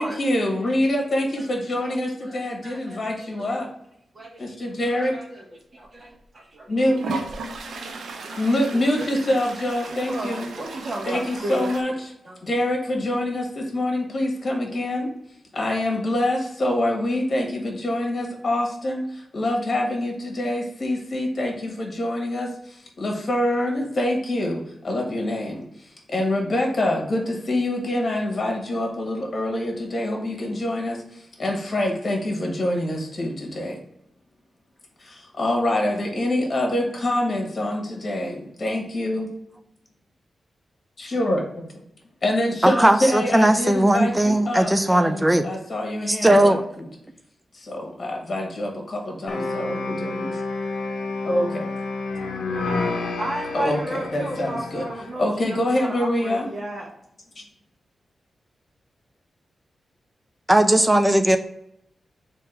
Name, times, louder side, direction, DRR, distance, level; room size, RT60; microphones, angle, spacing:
voice 1, 0.0-3.7 4.4-5.2 6.7-7.0 8.4-10.5 11.0-12.1 12.4-15.1 15.5-33.8 35.0-39.3 41.0-41.7 42.2-46.9 47.5-50.4 51.2-51.7 53.5-54.8 55.2-56.5, left 1 dB, 45° left, 1 dB, 1.4 m, -25 dB
voice 2, 1.8-3.6 4.1-9.3 9.9-11.7 12.2-12.4 52.6-52.7 53.2-56.9, right 1 dB, 45° right, -2 dB, 1.1 m, -35 dB
Toilet flush, 6.0-6.1 7.0-11.8, right 3 dB, 85° right, 0.6 m, -35 dB
voice 3, 42.6-45.5 46.1-46.6 60.5-61.4, right 1 dB, 15° right, 8 dB, 0.4 m, -18 dB
sound 1, 49.3-55.2, left 3 dB, 90° left, 0.6 m, -29 dB
3.5 x 2.9 x 4.5 m, 0.75 s
cardioid pair, 75°, 0 cm